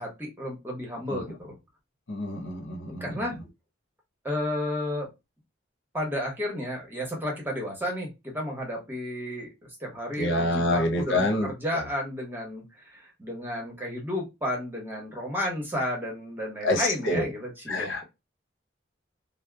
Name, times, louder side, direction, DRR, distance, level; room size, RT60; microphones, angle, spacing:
voice 1, 0.0-1.5 2.9-3.4 4.2-5.1 5.9-9.5 9.8-18.0, left 1 dB, 10° right, 0.9 m, -32 dB
voice 2, 2.1-3.1 10.2-11.8 16.6-17.3 17.7-18.0, left 1 dB, 85° left, 0.8 m, -27 dB
2.7 x 2.0 x 2.2 m
head